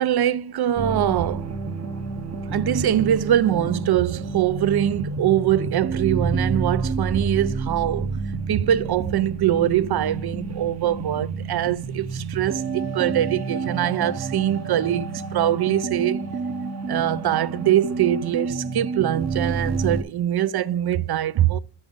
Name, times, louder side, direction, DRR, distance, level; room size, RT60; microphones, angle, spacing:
voice 1, 0.0-1.5 2.5-8.1 8.5-16.2 16.9-21.6, right 11 dB, 60° right, 0.5 m, -23 dB
sound 1, 0.8-20.0, right 4 dB, 35° right, 0.8 m, -29 dB
9.6 x 5.6 x 3.5 m
wide cardioid pair, 160°, 46 cm